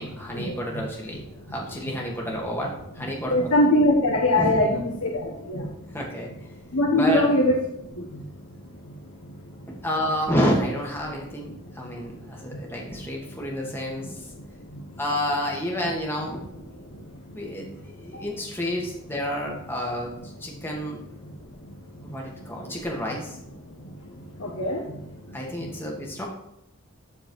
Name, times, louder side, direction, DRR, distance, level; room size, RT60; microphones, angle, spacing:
voice 1, 0.0-3.5 4.3-4.8 5.9-6.3 7.0-7.3 9.8-14.2 15.0-16.8 17.4-17.7 18.0-21.0 22.0-23.4 24.1-24.2 25.3-26.3, equal, 10° left, -2 dB, 1.8 m, -29 dB
voice 2, 3.3-5.7 6.7-7.6 8.0-8.1 24.4-24.8, left 1 dB, 85° left, 0 dB, 1.4 m, -21 dB
12.5 x 4.6 x 4.6 m, 0.82 s
head